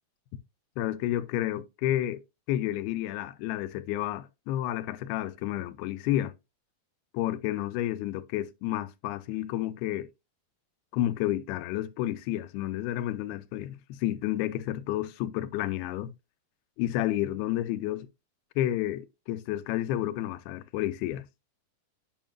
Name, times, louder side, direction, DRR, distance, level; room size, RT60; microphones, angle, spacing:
voice 1, 0.8-2.2 2.5-6.3 7.1-10.1 10.9-16.1 16.8-18.1 18.6-21.3, left 13 dB, 85° left, 2.6 m, -30 dB
8.9 x 5.4 x 2.3 m
omnidirectional pair, 4.5 m